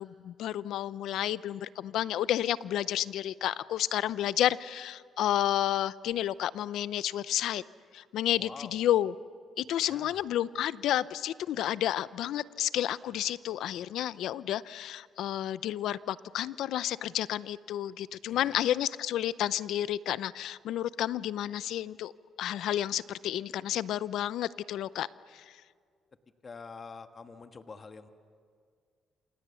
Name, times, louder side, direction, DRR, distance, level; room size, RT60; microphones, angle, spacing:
voice 1, 0.0-7.6 7.9-9.1 9.6-22.1 22.4-25.1 25.3-25.4, left 12 dB, 80° left, 17 dB, 0.6 m, -31 dB
voice 2, 8.4-8.8 9.9-10.3 18.3-18.6 26.4-28.1, left 4 dB, 35° left, 7 dB, 1.5 m, -46 dB
29.0 x 27.0 x 7.1 m, 2.1 s
cardioid pair, 90°, 0 cm